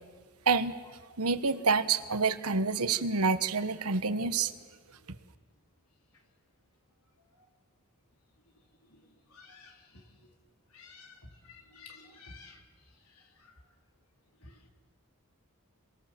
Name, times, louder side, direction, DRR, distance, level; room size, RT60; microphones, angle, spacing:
voice 1, 1.2-4.5, right 4 dB, 90° right, 11 dB, 1.3 m, -27 dB
voice 2, 9.3-9.7 10.7-11.1 11.5-12.6, left 4 dB, 80° left, 3 dB, 3.7 m, -51 dB
30.0 x 23.5 x 7.7 m, 1.5 s
head